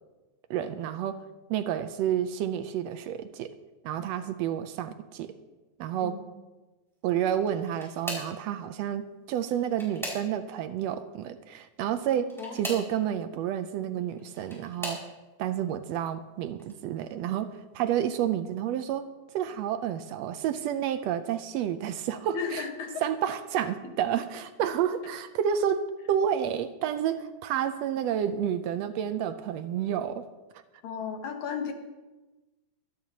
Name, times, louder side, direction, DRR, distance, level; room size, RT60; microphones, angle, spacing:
voice 1, 0.5-1.2 1.5-3.5 3.8-5.4 5.8-6.2 7.0-15.0 15.4-22.6 23.0-30.3, right 9 dB, 80° right, 10 dB, 1.6 m, -30 dB
sound 1, 7.4-8.4 9.4-10.6 12.2-12.9 14.0-15.1 15.8-16.2 16.6-16.7 18.1-18.2, equal, ahead, 4.8 m, -39 dB
voice 2, 22.3-23.1 30.8-31.7, left 6 dB, 75° left, 4 dB, 2.6 m, -34 dB
24.0 x 10.5 x 2.9 m, 1.2 s
omnidirectional pair, 3.3 m